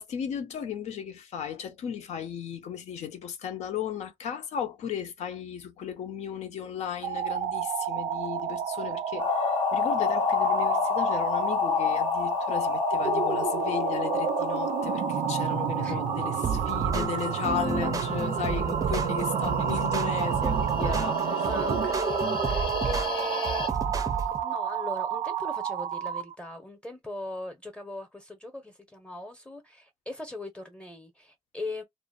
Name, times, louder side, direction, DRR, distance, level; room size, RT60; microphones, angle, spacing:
voice 1, 0.0-21.5, left 8 dB, 85° left, 0.7 m, -35 dB
sound 1, 6.9-26.3, right 8 dB, 90° right, 0.4 m, -30 dB
sound 2, 9.2-23.7, left 7 dB, 50° left, 0.4 m, -31 dB
sound 3, 16.4-24.4, right 5 dB, 30° right, 0.4 m, -32 dB
voice 2, 20.8-31.8, left 1 dB, 10° left, 0.7 m, -40 dB
2.5 x 2.0 x 2.4 m
cardioid pair, 105°, 11 cm